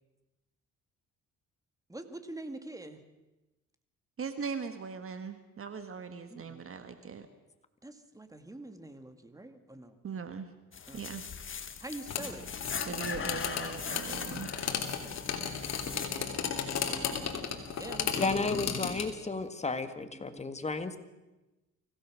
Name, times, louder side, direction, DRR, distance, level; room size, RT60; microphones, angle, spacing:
voice 1, 1.9-3.0 6.3-6.6 7.8-10.0 10.9-11.1 11.8-12.5 15.6-16.3 16.8-17.5 17.8-18.5 20.0-20.5, right 2 dB, 10° right, 8 dB, 2.2 m, -46 dB
voice 2, 4.2-7.3 10.0-10.5 10.9-11.2 12.8-14.5, right 5 dB, 45° right, 9 dB, 1.6 m, -40 dB
sound 1, 10.7-16.2, left 6 dB, 40° left, 1.7 m, -40 dB
sound 2, 12.1-19.1, left 7 dB, 60° left, 3.1 m, -35 dB
voice 3, 18.2-21.0, left 3 dB, 20° left, 9 dB, 1.8 m, -33 dB
25.0 x 16.0 x 6.4 m, 1.1 s
cardioid pair, 90°, 30 cm